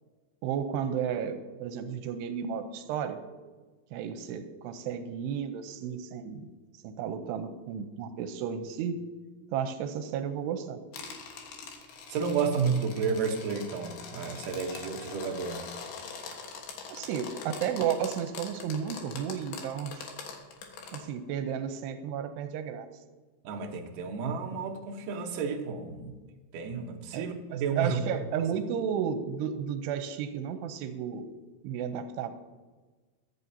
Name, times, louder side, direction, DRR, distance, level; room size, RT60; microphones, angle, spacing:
voice 1, 0.4-3.2 3.9-6.5 6.8-9.0 9.5-10.8 16.9-20.1 20.9-22.9 27.1-31.3 31.6-32.3, right 8 dB, 90° right, 9 dB, 2.8 m, -33 dB
sound 1, 10.9-21.0, left 5 dB, 80° left, 3.5 m, -43 dB
voice 2, 12.1-15.6 23.4-26.2 26.5-28.0, right 5 dB, 65° right, 2 dB, 2.3 m, -31 dB
22.5 x 8.4 x 2.8 m, 1.3 s
omnidirectional pair, 4.8 m